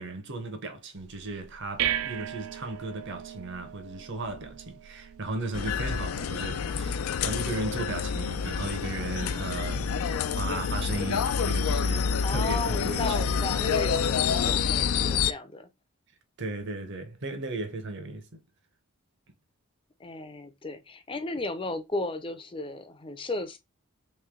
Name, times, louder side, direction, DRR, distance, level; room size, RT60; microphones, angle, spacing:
voice 1, 0.0-6.9 7.2-13.1 16.4-18.4, right 2 dB, 55° right, 0.8 m, -36 dB
sound 1, 1.0-12.0, right 10 dB, 80° right, 0.4 m, -40 dB
sound 2, 5.5-15.3, left 6 dB, 75° left, 0.4 m, -28 dB
voice 2, 12.2-15.7 20.0-23.6, left 2 dB, 25° left, 0.5 m, -34 dB
3.2 x 3.1 x 3.6 m
head